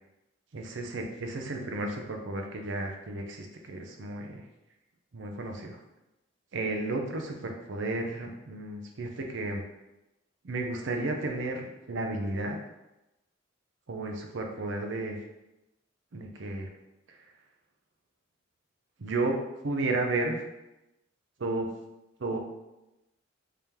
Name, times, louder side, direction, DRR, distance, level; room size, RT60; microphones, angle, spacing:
voice 1, 0.5-4.4 5.1-5.8 6.5-9.6 10.4-12.6 13.9-15.2 16.1-16.7 17.1-17.2 19.0-20.4 21.4-21.7 22.2-22.4, right 2 dB, 65° right, 2 dB, 0.6 m, -33 dB
3.5 x 3.4 x 2.9 m, 0.95 s
head